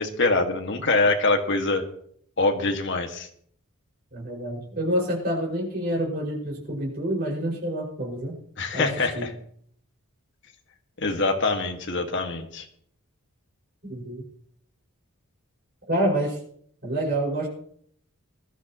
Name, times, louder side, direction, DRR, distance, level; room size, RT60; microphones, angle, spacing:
voice 1, 0.0-1.8 2.4-3.3 8.6-9.3 11.0-12.7, left 3 dB, 55° left, 4 dB, 1.8 m, -24 dB
voice 2, 4.1-8.4 8.7-9.3 13.8-14.2 15.9-16.4 16.8-17.5, right 1 dB, 45° right, -3 dB, 5.7 m, -27 dB
20.5 x 13.0 x 3.0 m, 0.63 s
head